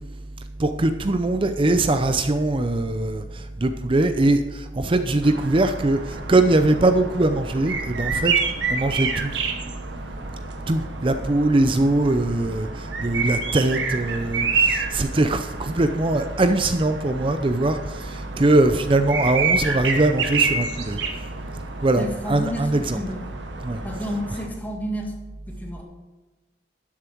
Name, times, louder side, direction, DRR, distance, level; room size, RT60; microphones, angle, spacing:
voice 1, 0.6-8.3 8.7-9.3 10.7-21.0 21.8-23.0 23.6-23.8, right 2 dB, 30° right, 9 dB, 0.5 m, -21 dB
sound 1, 5.2-24.5, right 4 dB, 90° right, 1.3 m, -29 dB
voice 2, 22.0-22.7 22.9-23.3 23.8-25.1 25.5-25.8, equal, 10° left, 0 dB, 2.0 m, -30 dB
12.0 x 7.4 x 4.5 m, 1.2 s
head